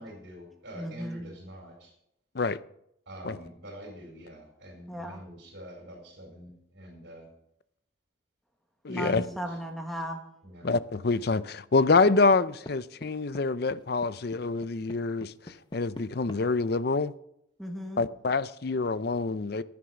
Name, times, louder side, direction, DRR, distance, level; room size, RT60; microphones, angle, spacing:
voice 1, 0.0-1.9 3.1-7.3 8.9-9.6 10.4-10.7, equal, 60° right, 4.5 m, -46 dB
voice 2, 0.7-1.2 4.9-5.2 8.9-10.2 17.6-18.0, equal, ahead, 1.4 m, -36 dB
voice 3, 8.8-9.3 10.6-17.1 18.0-19.6, left 3 dB, 55° left, 0.5 m, -26 dB
sound 1, 12.0-12.7 13.0-13.4 13.7-16.4, left 1 dB, 25° left, 0.8 m, -42 dB
15.0 x 9.7 x 5.9 m
head